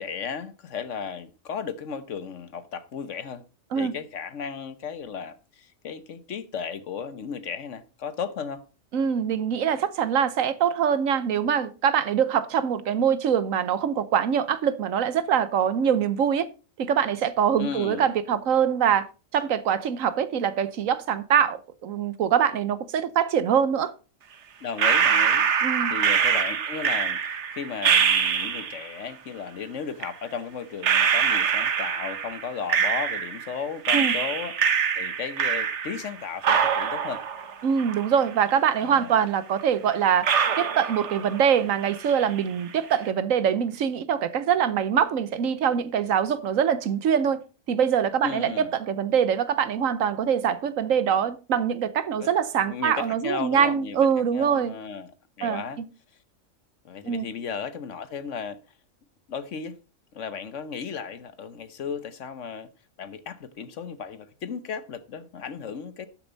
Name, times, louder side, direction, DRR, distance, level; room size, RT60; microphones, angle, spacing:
voice 1, 0.0-3.4 3.7-8.6 17.6-18.1 24.6-25.5 25.9-27.2 27.5-34.5 35.0-37.2 38.7-39.2 48.2-48.7 52.2-52.3 52.6-54.0 54.3-55.1 55.4-55.8 56.8-58.6 59.3-59.8 60.1-62.7 63.0-66.1, left 6 dB, 65° left, 1.2 m, -35 dB
voice 2, 8.9-16.5 16.8-19.1 19.3-23.9 25.6-25.9 33.9-34.1 37.6-40.3 40.6-47.4 47.7-48.5 48.8-54.7 55.4-55.9 57.1-57.3, right 8 dB, 80° right, 1.2 m, -24 dB
sound 1, 24.8-28.9 30.0-30.1 30.8-33.5 33.9-36.1 36.4-38.5 38.8-38.9 39.6-39.7 40.2-41.6 41.8-42.4, right 7 dB, 60° right, 1.2 m, -24 dB
12.5 x 6.9 x 4.0 m
omnidirectional pair, 1.4 m